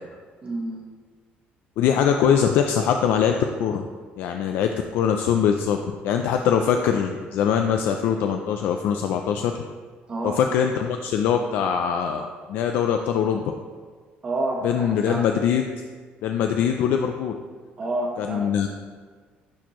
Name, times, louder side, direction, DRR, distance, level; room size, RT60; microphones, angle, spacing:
voice 1, 0.4-0.8 10.1-10.4 14.2-15.3 17.8-18.5, right 2 dB, 25° right, -1 dB, 1.1 m, -28 dB
voice 2, 1.8-3.8 4.2-9.6 10.2-13.5 14.6-15.6 16.2-17.3 18.2-18.7, left 8 dB, 70° left, 5 dB, 0.3 m, -22 dB
10.5 x 4.3 x 3.0 m, 1.5 s
cardioid pair, 175°, 4 cm